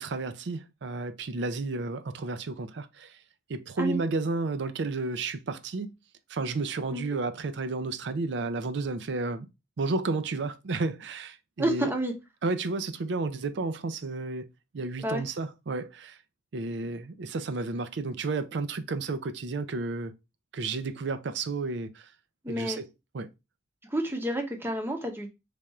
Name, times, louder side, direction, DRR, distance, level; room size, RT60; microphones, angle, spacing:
voice 1, 0.0-3.2 3.5-5.9 6.3-9.5 9.8-11.9 12.4-14.5 14.7-16.2 16.5-20.1 20.5-22.1 22.5-22.9 23.1-23.3, right 3 dB, 70° right, 0.5 m, -32 dB
voice 2, 11.6-12.1 15.0-15.2 22.4-22.8 23.9-25.3, right 1 dB, 10° right, 0.7 m, -29 dB
3.4 x 2.5 x 4.2 m
head